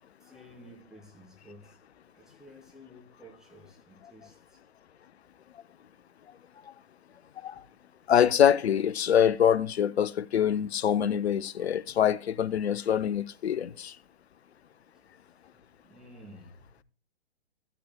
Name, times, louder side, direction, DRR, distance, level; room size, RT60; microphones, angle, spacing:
voice 1, 0.2-1.8 2.1-4.6 10.5-10.6 11.8-11.9 15.8-16.6, equal, ahead, 2.9 m, -52 dB
voice 2, 8.1-13.9, left 9 dB, 70° left, 0.7 m, -24 dB
14.5 x 13.5 x 2.2 m
hypercardioid pair, 130°, 34 cm